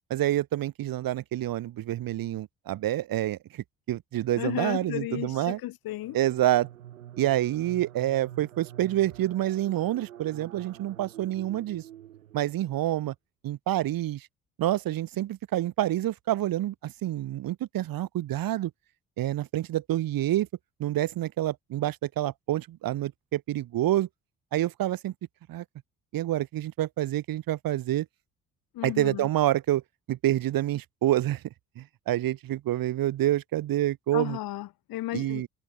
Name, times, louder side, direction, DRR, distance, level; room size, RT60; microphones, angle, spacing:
voice 1, 0.1-5.6 6.1-6.7 7.2-11.8 12.3-13.1 13.4-14.3 14.6-18.7 19.2-20.5 20.8-24.1 24.5-25.1 25.5-25.6 26.1-28.1 28.8-29.8 30.1-31.4 31.8-34.4 35.1-35.5, right 14 dB, 60° right, 1.9 m, -27 dB
voice 2, 4.3-6.2 28.7-29.3 34.1-35.4, left 16 dB, 65° left, 2.4 m, -34 dB
sound 1, 5.9-12.8, right 12 dB, 85° right, 6.0 m, -47 dB
hypercardioid pair, 45°, 39 cm